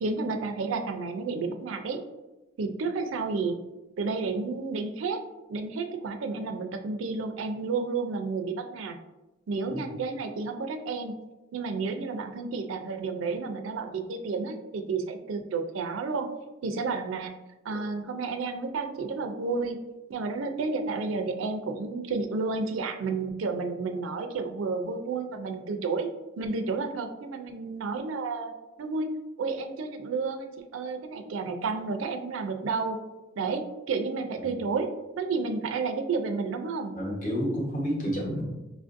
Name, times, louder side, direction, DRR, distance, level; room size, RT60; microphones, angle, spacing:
voice 1, 0.0-2.0 2.6-3.6 4.0-5.2 5.5-9.0 9.5-11.1 11.5-16.3 16.6-17.3 17.6-19.8 20.1-26.1 26.4-28.5 28.8-33.0 33.4-36.9, right 4 dB, 70° right, 6 dB, 0.4 m, -31 dB
voice 2, 37.0-38.4, equal, 40° left, -2 dB, 1.0 m, -30 dB
4.9 x 2.5 x 2.5 m, 1.1 s
head